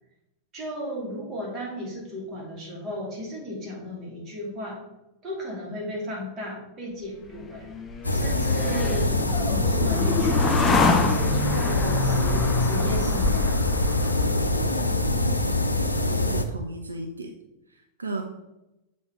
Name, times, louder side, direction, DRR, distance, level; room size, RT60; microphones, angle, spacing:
voice 1, 0.5-4.8 5.2-7.7 8.1-13.7, equal, 30° right, -2 dB, 2.8 m, -35 dB
sound 1, 7.3-14.7, left 4 dB, 20° left, 0.8 m, -27 dB
sound 2, 8.0-16.4, left 2 dB, 80° left, 0.5 m, -24 dB
voice 2, 15.4-17.3 17.7-18.2, right 2 dB, 75° right, 4 dB, 0.6 m, -36 dB
7.2 x 4.3 x 4.7 m, 0.94 s
figure-of-eight pair, 90°, 0 cm